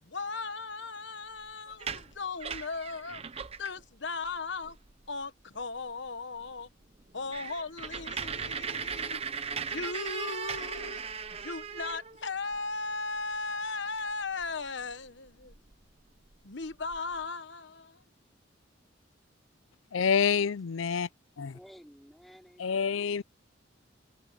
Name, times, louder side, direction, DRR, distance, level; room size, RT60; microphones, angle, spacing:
voice 1, 0.0-3.2 3.6-4.8 5.1-6.7 7.1-9.2 9.6-11.0 11.4-15.6 16.4-18.0, left 3 dB, 60° left, 1.2 m, -37 dB
sound 1, 1.7-3.8 4.3-4.4 4.6-5.1 5.6-5.7 6.1-6.2 6.5-6.6 6.9-12.6 14.0-14.1 14.4-15.7 16.3-16.4 16.6-17.2, right 6 dB, 30° right, 0.8 m, -38 dB
voice 2, 19.9-21.1 21.4-21.5 22.6-23.2, left 6 dB, 85° left, 0.5 m, -27 dB
voice 3, 21.5-23.2, equal, ahead, 5.0 m, -54 dB
head